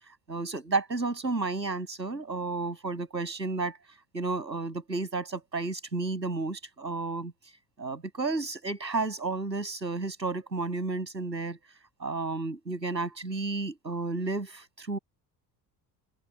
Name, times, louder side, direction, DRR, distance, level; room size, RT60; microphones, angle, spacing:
voice 1, 0.3-3.8 4.1-7.3 7.8-11.6 12.0-15.0, right 3 dB, 85° right, 7.7 m, -32 dB
open air
figure-of-eight pair, 55°, 50 cm